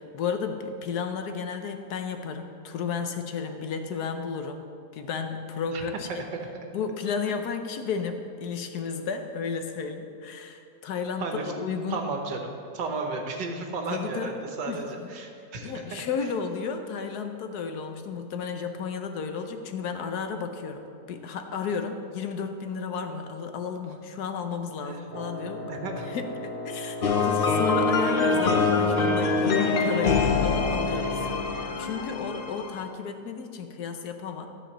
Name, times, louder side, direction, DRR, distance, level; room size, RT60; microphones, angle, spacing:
voice 1, 0.0-4.6 4.9-6.1 6.7-12.0 13.9-15.1 15.6-25.7 26.0-31.2 31.5-34.5, left 5 dB, 70° left, 6 dB, 1.2 m, -33 dB
voice 2, 6.1-6.6 11.2-11.5 11.9-16.0 24.8-25.0 25.6-26.1, right 3 dB, 80° right, 3 dB, 1.8 m, -34 dB
Wind instrument woodwind instrument, 25.1-31.8, left 2 dB, 15° left, 0.5 m, -36 dB
sound 1, 27.0-32.8, left 4 dB, 45° left, 0.8 m, -24 dB
13.0 x 5.0 x 7.3 m, 2.4 s
omnidirectional pair, 1.9 m